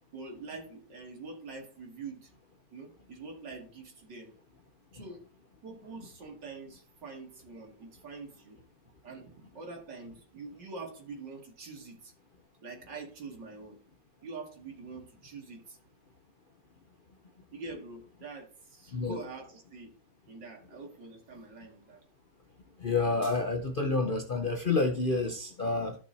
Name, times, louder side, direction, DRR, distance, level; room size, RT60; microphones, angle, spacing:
voice 1, 0.1-2.3 2.7-4.3 4.9-5.2 5.6-8.6 9.0-12.1 12.6-13.8 14.2-15.8 17.5-19.9 20.3-22.0, right 3 dB, 85° right, 2.9 m, -45 dB
voice 2, 22.8-26.0, left 3 dB, 45° left, 0.6 m, -29 dB
13.5 x 6.1 x 2.8 m
omnidirectional pair, 1.9 m